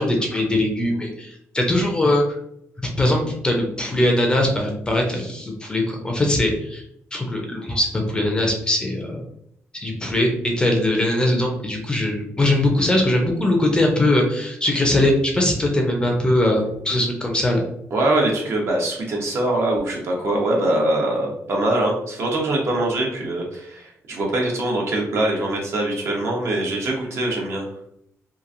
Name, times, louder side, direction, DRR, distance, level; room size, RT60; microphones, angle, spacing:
voice 1, 0.0-2.2 3.0-6.8 7.1-9.2 9.7-17.6, left 1 dB, 15° left, 1 dB, 0.5 m, -21 dB
voice 2, 17.9-27.7, right 1 dB, 55° right, -1 dB, 0.9 m, -23 dB
2.9 x 2.5 x 2.5 m, 0.74 s
cardioid pair, 130°, 5 cm